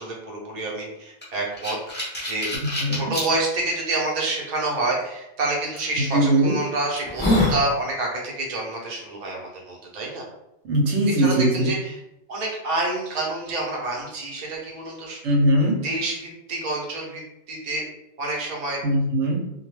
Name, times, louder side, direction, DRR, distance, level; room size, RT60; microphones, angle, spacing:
voice 1, 0.0-10.3 11.2-12.0 12.3-15.2 15.8-17.2 17.5-17.9 18.2-18.8, right 2 dB, 40° right, -2 dB, 0.7 m, -28 dB
sound 1, 1.2-3.3 3.9-4.0 5.8-5.9 6.5-6.6 7.0-7.6, left 1 dB, 10° left, 0.6 m, -24 dB
voice 2, 2.8-3.1 6.1-6.5 10.7-11.7 15.2-15.8 18.8-19.4, right 1 dB, 80° right, -1 dB, 0.9 m, -20 dB
2.2 x 2.2 x 3.1 m, 0.86 s
omnidirectional pair, 1.2 m